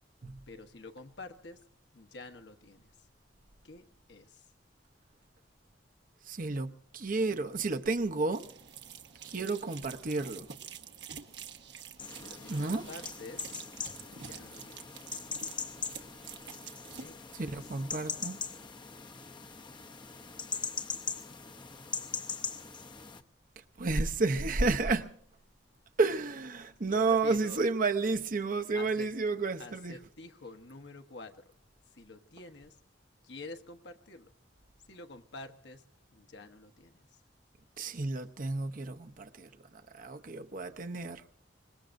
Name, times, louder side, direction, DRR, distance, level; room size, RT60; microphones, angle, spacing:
voice 1, 0.5-1.6 1.9-2.9 3.6-4.3 12.2-13.5 14.2-14.8 17.0-17.2 17.4-17.7 26.9-27.7 28.7-29.1 29.6-31.3 32.0-32.7 33.3-34.3 34.9-35.8 36.1-37.1, left 2 dB, 65° left, 1.2 m, -48 dB
voice 2, 6.3-8.4 9.2-10.5 12.5-12.8 17.3-18.4 23.8-25.1 26.0-30.0 37.8-39.5 39.9-41.2, right 3 dB, 50° right, 0.8 m, -31 dB
sound 1, 8.3-17.1, right 7 dB, 70° right, 1.3 m, -48 dB
sound 2, 12.0-23.2, left 6 dB, 25° left, 0.7 m, -41 dB
25.5 x 21.0 x 2.6 m
head